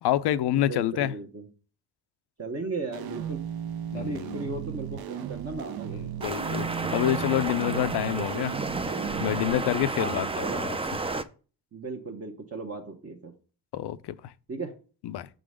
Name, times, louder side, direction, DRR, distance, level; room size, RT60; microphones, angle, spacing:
voice 1, 0.0-1.1 3.9-4.4 5.9-8.6 9.2-10.7 13.7-14.1 15.0-15.3, left 12 dB, 80° left, 0.5 m, -27 dB
voice 2, 0.5-1.5 2.4-3.4 3.9-6.1 9.9-10.6 11.7-13.3 14.5-14.7, right 3 dB, 35° right, 1.0 m, -36 dB
sound 1, 2.9-9.5, right 9 dB, 65° right, 0.6 m, -36 dB
sound 2, 6.2-11.2, right 3 dB, 15° right, 0.4 m, -31 dB
6.6 x 3.9 x 4.8 m
cardioid pair, 115°, 39 cm